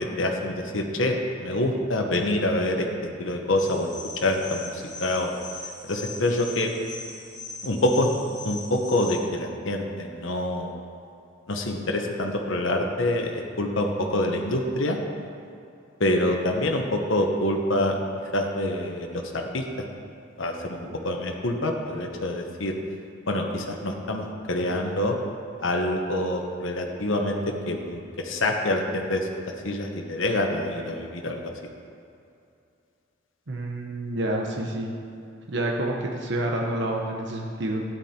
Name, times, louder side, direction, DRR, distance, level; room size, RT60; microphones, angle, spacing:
voice 1, 0.0-2.9 3.2-3.9 4.2-5.3 5.8-6.7 7.6-8.2 8.4-10.7 11.5-15.0 16.0-18.0 18.3-19.6 20.4-22.7 23.3-25.1 25.6-31.5, left 1 dB, 85° left, 2 dB, 1.2 m, -26 dB
sound 1, 3.6-9.2, left 3 dB, 20° left, 2.1 m, -40 dB
voice 2, 33.5-34.9 35.5-37.8, right 1 dB, 65° right, 0 dB, 1.1 m, -28 dB
13.0 x 9.7 x 4.4 m, 2.6 s
head